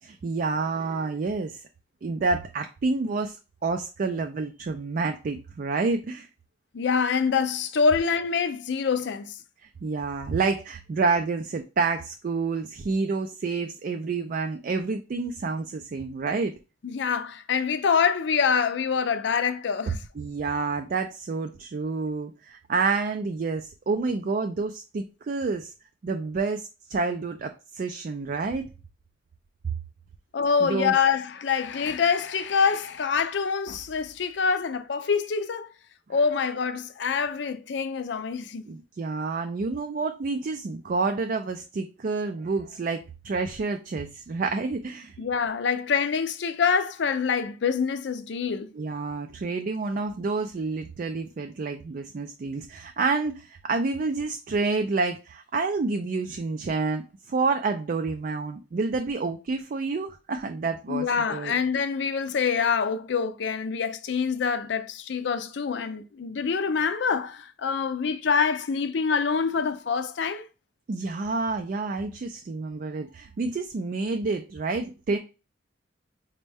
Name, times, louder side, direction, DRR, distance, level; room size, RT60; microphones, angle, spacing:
voice 1, 0.0-1.6 2.0-3.4 3.6-6.3 9.8-16.5 20.2-25.7 26.0-28.7 30.6-30.9 38.7-45.1 48.7-61.5 70.9-75.2, right 4 dB, 45° right, 0.3 m, -28 dB
voice 2, 6.7-9.4 16.8-20.0 30.3-35.7 36.1-38.6 45.2-48.7 60.9-70.5, left 6 dB, 60° left, 0.4 m, -25 dB
5.1 x 2.2 x 3.3 m
head